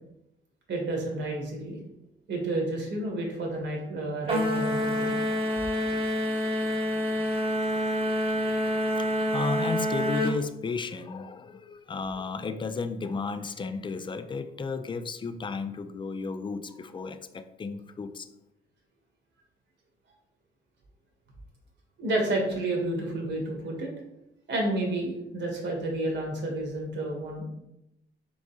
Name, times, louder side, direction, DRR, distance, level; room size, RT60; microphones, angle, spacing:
voice 1, 0.7-1.8 2.3-5.2 22.0-23.9 24.5-27.4, right 2 dB, 65° right, 0 dB, 1.6 m, -30 dB
sound 1, 4.3-10.4, equal, 30° right, 1.0 m, -27 dB
voice 2, 9.0-18.3, left 4 dB, 25° left, 10 dB, 0.4 m, -33 dB
3.9 x 3.5 x 3.9 m, 0.86 s
cardioid pair, 90°, 20 cm